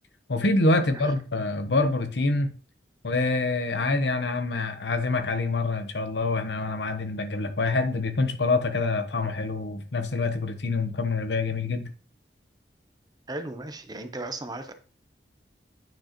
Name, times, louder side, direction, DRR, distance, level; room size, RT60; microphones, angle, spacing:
voice 1, 0.3-2.5 3.0-11.9, left 3 dB, 70° left, 0.9 m, -26 dB
voice 2, 13.3-14.7, right 2 dB, 20° right, 0.7 m, -36 dB
9.2 x 5.0 x 3.0 m
head